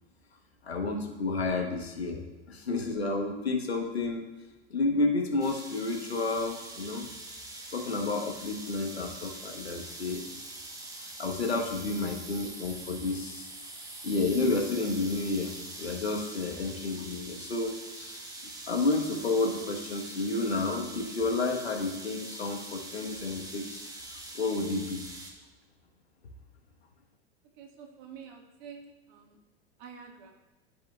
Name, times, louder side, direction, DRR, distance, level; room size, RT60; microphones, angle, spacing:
voice 1, 0.6-4.3 4.7-7.1 7.7-10.3 11.0-13.4 14.0-15.5 15.8-18.2 18.7-23.8 24.3-25.0, left 3 dB, 80° left, 2 dB, 1.3 m, -30 dB
sound 1, 5.4-25.3, right 2 dB, 10° right, 1.4 m, -44 dB
voice 2, 27.6-29.4 29.8-30.3, right 6 dB, 50° right, 2 dB, 1.7 m, -48 dB
14.0 x 5.1 x 2.3 m, 1.1 s
figure-of-eight pair, 85°, 31 cm